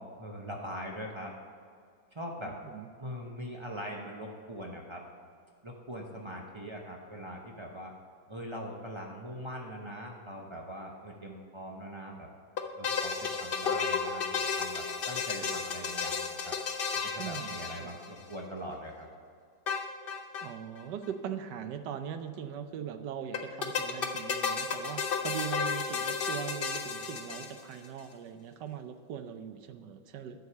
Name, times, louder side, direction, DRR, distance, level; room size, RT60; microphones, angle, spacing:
voice 1, 0.0-1.3 2.1-2.6 3.0-5.0 5.6-7.9 8.3-12.3 12.8-16.6 17.0-19.1, equal, 35° right, 0 dB, 0.4 m, -42 dB
voice 2, 2.4-2.9 17.2-17.9 20.4-30.4, right 8 dB, 75° right, 9 dB, 1.3 m, -40 dB
sound 1, 12.6-18.3 19.7-20.5 20.8-20.9 21.0-21.1 23.3-27.9, left 5 dB, 55° left, 0.6 m, -33 dB
10.5 x 4.8 x 6.8 m, 2.2 s
omnidirectional pair, 1.9 m